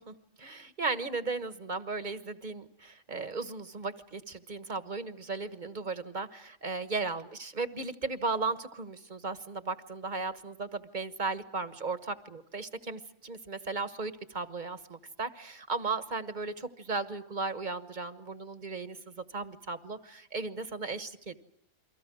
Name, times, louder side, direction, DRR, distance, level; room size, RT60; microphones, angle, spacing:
voice 1, 0.0-21.4, right 3 dB, 40° right, 11 dB, 1.4 m, -36 dB
30.0 x 23.5 x 6.2 m, 0.71 s
omnidirectional pair, 1.3 m